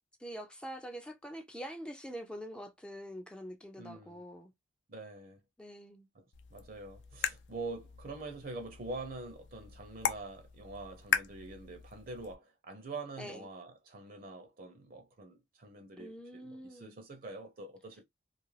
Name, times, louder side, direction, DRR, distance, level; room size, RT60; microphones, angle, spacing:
voice 1, 0.2-4.5 5.6-6.1 13.2-13.5 16.0-17.0, equal, 5° left, 0.3 m, -45 dB
voice 2, 3.8-4.2 4.9-5.4 6.1-6.2 6.5-18.0, right 2 dB, 50° right, 0.6 m, -45 dB
sound 1, 6.3-12.3, left 7 dB, 75° left, 0.5 m, -39 dB
2.5 x 2.4 x 3.1 m
head